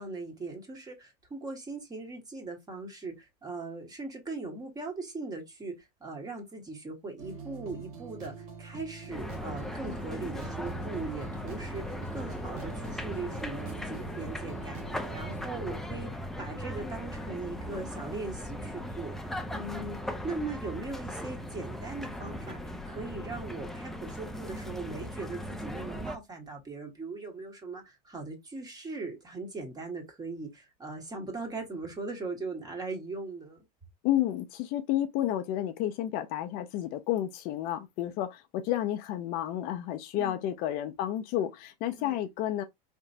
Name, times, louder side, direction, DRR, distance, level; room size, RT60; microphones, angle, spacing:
voice 1, 0.0-20.0 20.2-22.6 22.9-33.6 40.1-40.4 42.0-42.2, right 3 dB, 20° right, 1.7 m, -39 dB
sound 1, 7.2-15.5, right 5 dB, 70° right, 1.6 m, -45 dB
sound 2, 9.1-26.2, equal, ahead, 0.5 m, -38 dB
voice 2, 34.0-42.6, left 12 dB, 50° left, 0.6 m, -31 dB
4.4 x 2.9 x 2.6 m
supercardioid pair, 125°, 19 cm